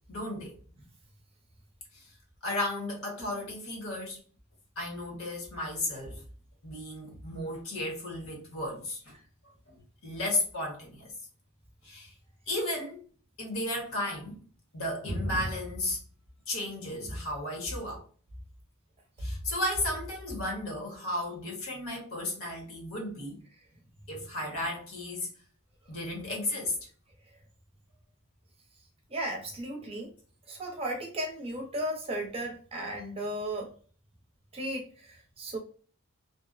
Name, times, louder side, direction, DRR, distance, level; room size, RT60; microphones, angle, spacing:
voice 1, 0.1-0.6 1.9-2.0 2.4-4.2 4.8-6.2 6.6-9.1 10.0-11.1 11.8-12.1 12.5-13.0 13.4-14.4 14.7-16.0 16.5-18.0 19.2-23.4 24.1-25.3 25.9-26.8, left 1 dB, 70° left, 1.0 m, -34 dB
voice 2, 29.1-30.1 30.5-33.7 34.5-35.6, right 1 dB, 25° right, 0.6 m, -35 dB
2.7 x 2.1 x 2.4 m
head